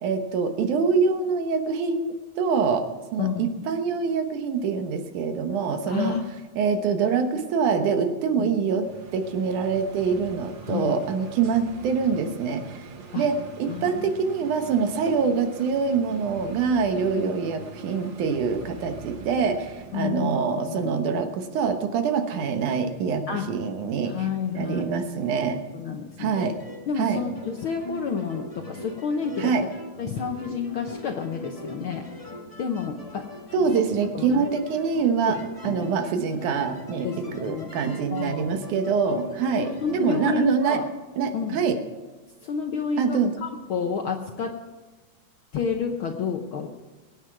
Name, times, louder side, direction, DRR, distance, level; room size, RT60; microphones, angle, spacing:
voice 1, 0.0-2.9 3.1-6.2 6.6-8.9 9.1-12.9 13.2-24.2 24.5-25.6 26.2-26.6 27.0-27.2 29.4-29.6 33.5-35.4 35.6-40.8 41.2-41.8 43.0-43.3, right 5 dB, 85° right, 6 dB, 2.7 m, -25 dB
voice 2, 3.2-3.5 5.9-6.2 8.4-8.5 10.6-11.0 13.1-13.3 13.7-14.1 17.2-17.3 19.9-21.0 23.3-23.5 24.0-24.9 25.7-26.5 26.9-29.7 30.0-32.1 32.6-33.3 34.1-34.5 35.3-35.9 37.0-37.7 38.1-38.5 39.6-40.8 41.3-41.6 42.4-44.6 45.5-46.7, left 6 dB, 70° left, 4 dB, 1.2 m, -30 dB
sound 1, 8.8-20.1, right 5 dB, 55° right, 1.4 m, -43 dB
sound 2, 26.3-40.2, equal, 35° left, 0.5 m, -40 dB
22.5 x 9.2 x 4.7 m, 1.3 s
omnidirectional pair, 3.4 m